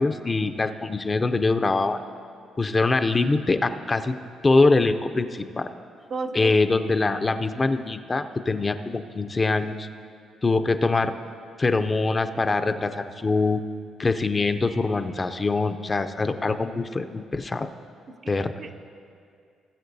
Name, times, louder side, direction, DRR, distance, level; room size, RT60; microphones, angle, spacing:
voice 1, 0.0-2.0 2.6-4.2 4.4-5.7 6.4-9.9 10.4-11.1 11.6-13.6 14.0-17.7 18.3-18.5, left 3 dB, 25° left, 8 dB, 0.4 m, -23 dB
voice 2, 6.1-6.5 18.2-18.8, right 4 dB, 45° right, 7 dB, 0.5 m, -33 dB
18.5 x 7.6 x 2.7 m, 2.4 s
cardioid pair, 90°, 0 cm